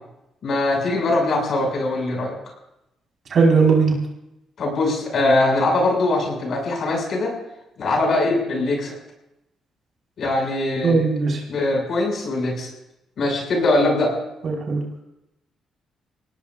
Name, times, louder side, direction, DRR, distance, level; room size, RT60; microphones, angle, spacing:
voice 1, 0.4-2.3 4.6-7.3 7.8-8.9 10.2-11.0 11.5-12.7 13.2-14.1, left 2 dB, 60° left, 0 dB, 6.6 m, -21 dB
voice 2, 3.3-3.9 10.8-11.4 14.4-14.8, right 4 dB, 55° right, -1 dB, 5.0 m, -18 dB
25.5 x 18.0 x 2.6 m, 0.88 s
cardioid pair, 90°, 0 cm